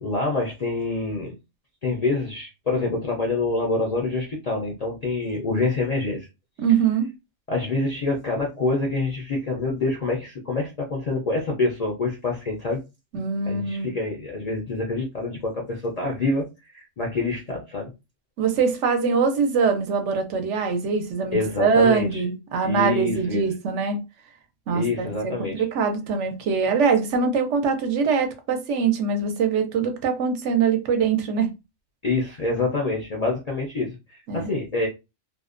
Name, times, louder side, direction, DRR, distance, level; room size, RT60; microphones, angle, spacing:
voice 1, 0.0-1.3 1.8-6.3 7.5-12.8 13.5-16.5 16.7-17.9 21.3-22.2 22.6-23.4 24.7-25.6 32.0-34.9, left 3 dB, 55° left, 0.4 m, -26 dB
voice 2, 6.6-7.1 13.1-13.9 18.4-24.0 24.7-31.5 34.3-34.5, right 5 dB, 75° right, 0.9 m, -23 dB
2.5 x 2.1 x 2.4 m
omnidirectional pair, 1.3 m